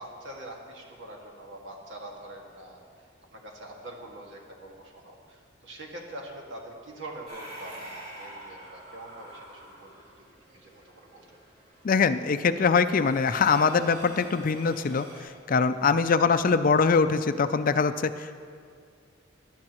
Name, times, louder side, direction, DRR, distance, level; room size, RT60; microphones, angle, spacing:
voice 1, 0.0-10.2 10.5-11.3 16.1-16.3, right 1 dB, 75° right, -1 dB, 2.0 m, -44 dB
sound 1, 7.3-15.2, right 1 dB, 45° right, 3.5 m, -46 dB
voice 2, 11.8-15.1 15.5-18.1, left 5 dB, 45° left, 11 dB, 0.4 m, -23 dB
20.0 x 10.5 x 3.0 m, 2.1 s
head